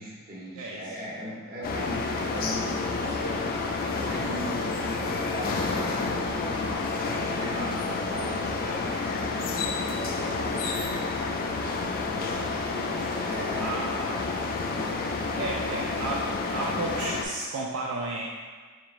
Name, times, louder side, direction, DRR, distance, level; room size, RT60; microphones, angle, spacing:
voice 1, 0.0-3.5 4.1-11.2 12.7-12.9 13.3-14.3 15.6-15.8, equal, 45° right, -5 dB, 0.9 m, -39 dB
voice 2, 0.5-1.0 7.5-7.8 8.5-9.0 10.1-10.5 12.2-12.5 13.6-14.1 15.4-18.3, right 2 dB, 75° right, -2 dB, 0.4 m, -34 dB
sound 1, 1.6-17.2, left 3 dB, 40° left, 0.3 m, -29 dB
4.5 x 3.1 x 2.5 m, 1.5 s
head